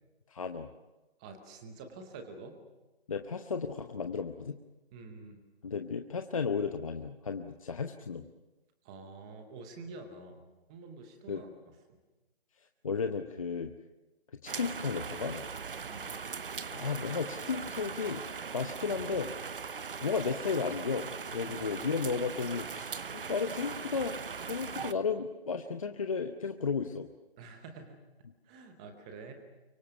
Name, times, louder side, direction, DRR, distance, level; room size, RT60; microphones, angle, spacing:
voice 1, 0.3-0.7 3.1-4.6 5.6-8.2 11.3-11.4 12.8-13.7 14.4-15.4 16.7-18.2 18.5-19.3 20.0-24.2 24.5-27.1, left 5 dB, 35° left, 6 dB, 0.9 m, -34 dB
voice 2, 1.2-2.6 4.9-5.4 8.8-11.7 15.8-16.1 21.4-21.9 24.8-24.9 27.4-28.0 28.4-29.3, right 3 dB, 5° right, 6 dB, 0.8 m, -48 dB
sound 1, 14.5-24.9, right 5 dB, 60° right, 0.9 m, -40 dB
24.0 x 23.0 x 7.1 m, 1.1 s
figure-of-eight pair, 165°, 31 cm